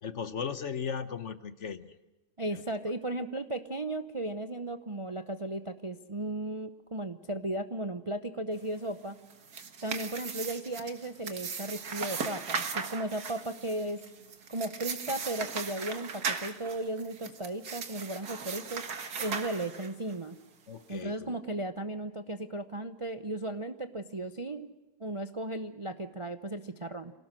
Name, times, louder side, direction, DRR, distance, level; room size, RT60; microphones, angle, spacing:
voice 1, 0.0-1.9 2.5-2.6 20.7-21.4, left 6 dB, 50° left, 13 dB, 1.1 m, -37 dB
voice 2, 2.4-9.2 9.8-14.0 14.5-18.9 19.2-20.4 20.9-24.7 25.0-27.1, right 1 dB, 30° right, 9 dB, 0.6 m, -35 dB
sound 1, 9.2-20.1, right 5 dB, 70° right, 2.2 m, -38 dB
27.0 x 18.0 x 6.3 m, 1.0 s
omnidirectional pair, 1.7 m